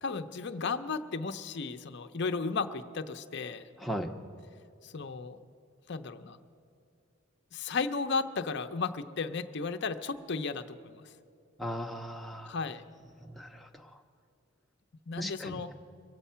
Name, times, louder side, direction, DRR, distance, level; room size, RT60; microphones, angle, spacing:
voice 1, 0.0-3.6 4.8-5.4 5.9-6.4 7.5-11.1 12.5-12.8 15.1-15.7, left 4 dB, 55° left, 9 dB, 0.6 m, -34 dB
voice 2, 3.8-4.1 11.6-12.5 13.3-13.7 15.2-15.7, equal, ahead, 2 dB, 0.7 m, -37 dB
23.0 x 8.3 x 5.6 m, 2.5 s
head